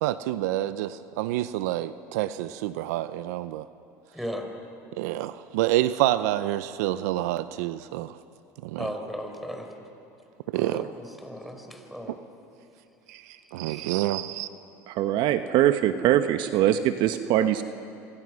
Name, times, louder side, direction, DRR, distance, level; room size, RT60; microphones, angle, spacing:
voice 1, 0.0-3.6 5.0-8.2 8.6-8.9 10.5-10.9 13.1-14.5, right 14 dB, 80° right, 14 dB, 0.7 m, -28 dB
voice 2, 4.1-4.5 8.8-9.7 10.5-12.2 13.7-13.8, equal, ahead, 4 dB, 4.8 m, -36 dB
voice 3, 14.9-17.6, right 12 dB, 60° right, 10 dB, 1.0 m, -22 dB
26.5 x 25.5 x 6.3 m, 2.7 s
hypercardioid pair, 85°, 9 cm